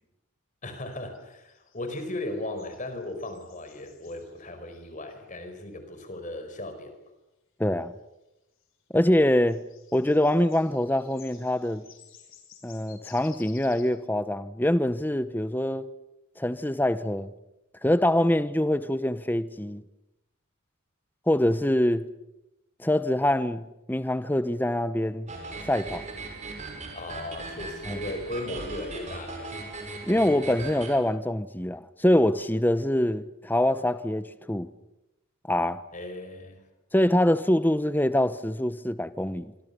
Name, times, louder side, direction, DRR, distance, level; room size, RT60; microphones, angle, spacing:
voice 1, 0.6-6.9 26.9-29.5 35.9-36.6, left 2 dB, 35° left, 4.9 m, -37 dB
sound 1, 0.9-5.1 8.6-8.7 9.0-13.8, left 8 dB, 65° left, 5.7 m, -55 dB
voice 2, 7.6-7.9 8.9-9.6 9.9-11.8 12.6-15.9 16.4-17.3 17.8-19.8 21.3-22.1 22.8-25.3 25.7-26.1 27.9-28.0 30.0-34.7 35.5-35.8 36.9-39.5, left 1 dB, 10° left, 0.9 m, -24 dB
sound 2, 25.3-31.0, right 3 dB, 35° right, 5.7 m, -39 dB
25.5 x 25.5 x 6.9 m
head